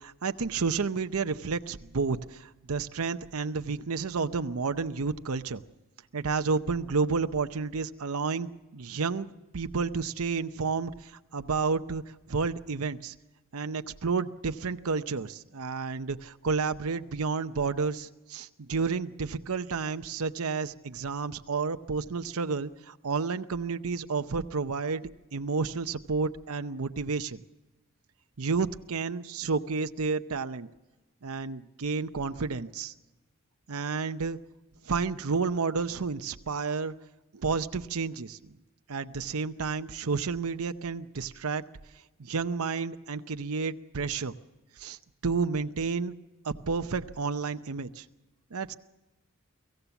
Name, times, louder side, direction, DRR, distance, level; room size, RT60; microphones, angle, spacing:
voice 1, 0.0-5.6 6.1-12.0 12.3-13.1 13.5-27.4 28.4-30.7 31.2-32.9 33.7-34.4 34.9-36.9 37.3-38.5 38.9-41.6 42.2-44.3 44.8-45.0 45.2-46.1 46.4-48.0 48.5-48.7, right 4 dB, 80° right, 9 dB, 0.7 m, -31 dB
24.5 x 16.0 x 7.0 m, 1.1 s
head